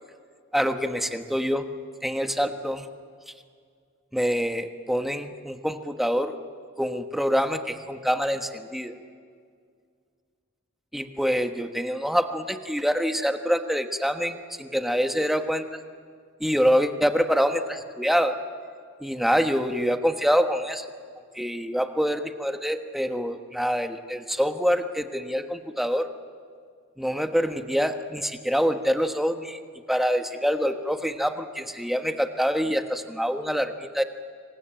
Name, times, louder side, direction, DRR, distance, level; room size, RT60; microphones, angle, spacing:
voice 1, 0.5-1.7 2.0-2.8 4.1-6.3 6.8-8.9 10.9-15.6 16.4-18.3 19.0-20.8 21.3-26.1 27.0-29.6 29.9-34.0, equal, ahead, 6 dB, 1.2 m, -25 dB
27.0 x 23.5 x 9.0 m, 2.1 s
head